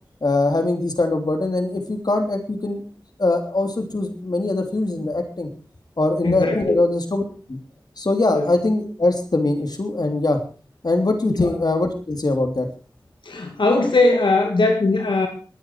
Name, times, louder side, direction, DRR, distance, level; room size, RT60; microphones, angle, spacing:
voice 1, 0.2-2.8 3.2-5.5 6.0-7.2 7.5-7.6 8.0-10.4 10.8-12.7, left 2 dB, 60° left, 5 dB, 3.2 m, -22 dB
voice 2, 6.2-6.8 8.3-8.5 11.4-11.5 13.3-15.3, left 2 dB, 85° left, 3 dB, 2.2 m, -19 dB
22.0 x 9.8 x 4.7 m, 0.38 s
wide cardioid pair, 55°, 8 cm